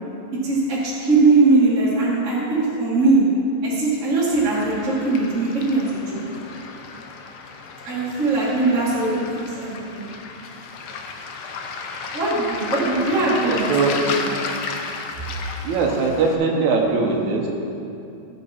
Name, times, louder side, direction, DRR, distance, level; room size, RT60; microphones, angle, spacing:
voice 1, 0.4-3.2 3.6-6.2 7.8-9.1 9.4-10.0 12.1-14.4, right 3 dB, 30° right, -7 dB, 2.1 m, -20 dB
Waves surf, 4.4-16.4, left 4 dB, 80° left, 1.2 m, -33 dB
voice 2, 13.2-14.0 15.6-17.5, right 4 dB, 75° right, 0 dB, 2.2 m, -21 dB
15.0 x 7.3 x 4.3 m, 2.7 s
omnidirectional pair, 3.4 m